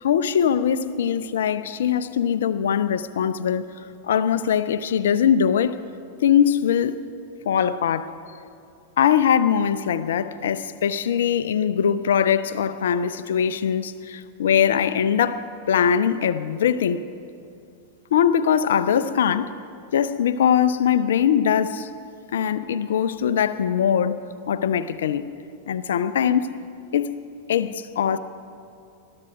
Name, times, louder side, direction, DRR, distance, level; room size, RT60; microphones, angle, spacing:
voice 1, 0.0-3.7 4.0-5.8 6.2-7.0 7.5-8.1 9.0-17.0 18.1-19.5 19.9-21.9 22.3-25.3 25.7-26.5 26.9-27.1 27.5-28.2, left 8 dB, 60° left, 0.6 m, -21 dB
20.5 x 12.5 x 5.0 m
figure-of-eight pair, 90°, 0 cm